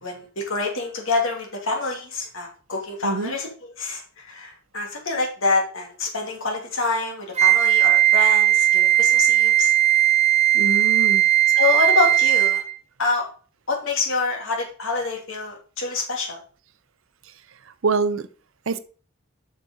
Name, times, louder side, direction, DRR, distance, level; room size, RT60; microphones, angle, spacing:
voice 1, 0.0-9.7 11.5-12.6 13.0-13.3 13.7-16.4, left 3 dB, 65° left, 2.5 m, -26 dB
Wind instrument woodwind instrument, 7.4-12.7, right 12 dB, 30° right, 0.8 m, -17 dB
voice 2, 10.5-11.2 17.8-18.2 18.7-18.8, right 4 dB, 65° right, 0.6 m, -24 dB
7.5 x 6.2 x 3.9 m
head